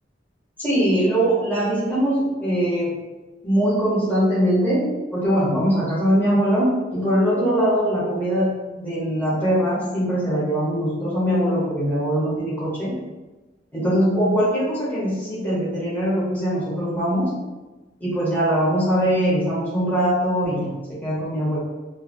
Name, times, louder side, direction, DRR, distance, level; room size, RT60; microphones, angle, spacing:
voice 1, 0.6-3.0 3.4-12.9 13.7-17.3 18.0-21.6, equal, 10° left, -9 dB, 1.0 m, -22 dB
2.6 x 2.6 x 2.6 m, 1.1 s
head